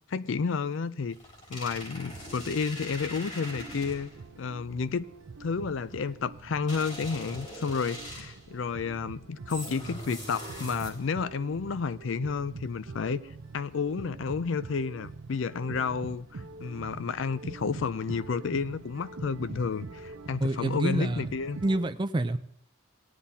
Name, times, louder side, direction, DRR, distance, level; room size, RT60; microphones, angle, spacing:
voice 1, 0.1-1.2 1.5-4.1 4.4-5.1 5.4-13.2 13.5-21.6, left 5 dB, 65° left, 0.4 m, -31 dB
sound 1, 1.1-4.3 6.7-8.5 9.5-11.2, equal, 40° left, 3.4 m, -42 dB
sound 2, 2.0-21.8, right 3 dB, 80° right, 0.6 m, -45 dB
voice 2, 20.4-21.2 21.6-22.4, right 2 dB, 25° right, 0.4 m, -27 dB
18.0 x 10.0 x 2.8 m
head